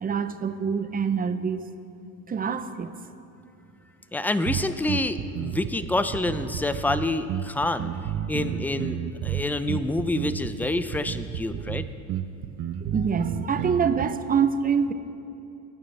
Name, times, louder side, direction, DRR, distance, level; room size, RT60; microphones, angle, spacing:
voice 1, 0.0-1.6 2.3-3.0 11.5-11.7 12.8-14.9, right 6 dB, 25° right, 10 dB, 0.7 m, -25 dB
voice 2, 4.1-7.9 8.3-11.8, left 2 dB, 5° left, 11 dB, 0.4 m, -27 dB
sound 1, 4.5-14.1, right 9 dB, 55° right, 0.8 m, -31 dB
22.0 x 9.3 x 3.3 m, 2.7 s
cardioid pair, 105°, 35 cm